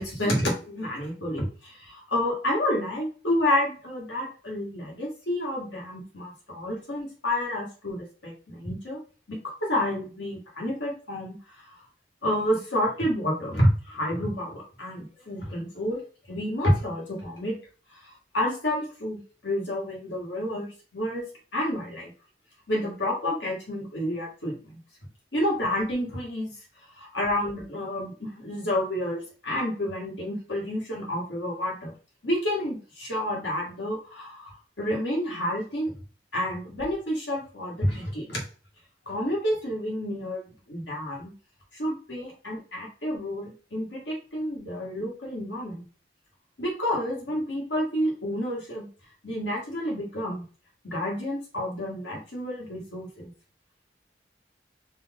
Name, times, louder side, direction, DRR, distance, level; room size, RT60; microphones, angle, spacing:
voice 1, 0.0-9.0 9.3-11.6 12.2-16.0 16.3-17.6 18.0-21.3 21.5-22.1 22.7-24.8 25.3-26.5 27.0-31.9 32.2-35.9 36.3-38.4 39.1-41.3 41.7-45.8 46.6-48.9 49.2-50.5 50.8-53.3, left 1 dB, 90° left, -3 dB, 1.8 m, -29 dB
4.4 x 2.4 x 3.7 m, 0.38 s
head